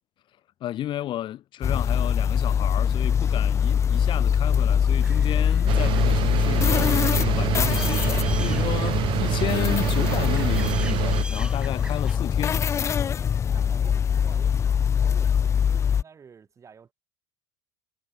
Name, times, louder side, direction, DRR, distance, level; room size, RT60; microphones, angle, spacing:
voice 1, 0.6-12.6, left 12 dB, 50° left, 2.4 m, -32 dB
sound 1, 1.6-16.0, left 8 dB, 25° left, 0.4 m, -23 dB
sound 2, 5.0-12.2, right 2 dB, 10° right, 2.5 m, -42 dB
sound 3, 5.7-11.2, right 14 dB, 50° right, 0.9 m, -27 dB
voice 2, 13.5-16.9, right 6 dB, 30° right, 7.8 m, -50 dB
supercardioid pair, 110°, 11 cm